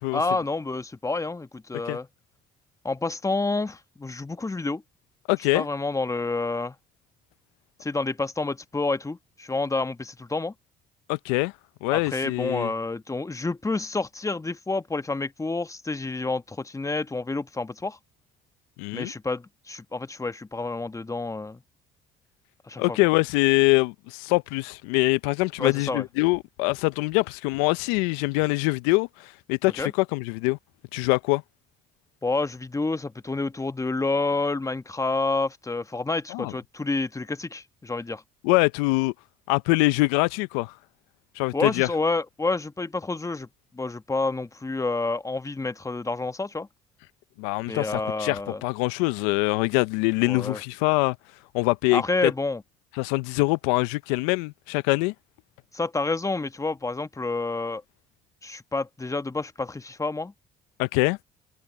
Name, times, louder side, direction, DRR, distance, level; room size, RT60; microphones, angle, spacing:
voice 1, 0.1-2.1 2.8-4.8 5.5-6.7 7.8-10.5 11.9-18.0 18.9-21.6 22.6-23.0 25.6-26.0 29.8-29.9 32.2-38.2 41.5-43.5 43.7-46.7 47.7-48.6 50.2-50.6 51.9-52.6 55.7-57.8 58.4-60.3, left 3 dB, 15° left, 1.2 m, -29 dB
voice 2, 5.3-5.7 11.1-11.5 11.8-12.7 18.8-19.1 22.8-30.6 30.9-31.4 36.3-36.5 38.4-39.1 39.5-40.7 41.4-41.9 47.4-51.2 51.5-52.3 53.0-55.1 60.8-61.2, left 25 dB, 85° left, 0.6 m, -24 dB
hypercardioid pair, 65°, 20 cm